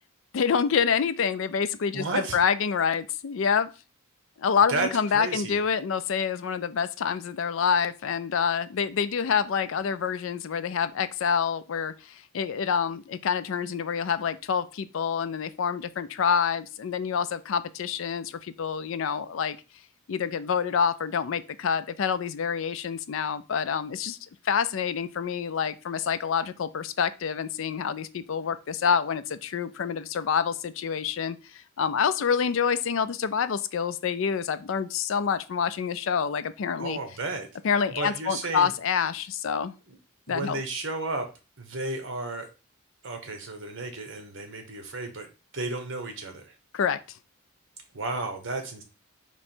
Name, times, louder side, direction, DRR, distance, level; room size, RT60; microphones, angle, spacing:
voice 1, 0.3-3.7 4.4-19.6 20.1-24.2 24.4-37.0 37.6-39.7 40.3-40.6 46.7-47.0, left 6 dB, 60° left, 13 dB, 0.4 m, -27 dB
voice 2, 1.9-2.4 4.7-4.9 5.1-5.6 36.8-37.5 38.0-38.7 40.3-41.3 41.6-42.5 43.0-45.3 45.5-46.5 47.9-48.8, right 3 dB, 60° right, 5 dB, 1.0 m, -32 dB
3.4 x 3.0 x 4.3 m, 0.31 s
head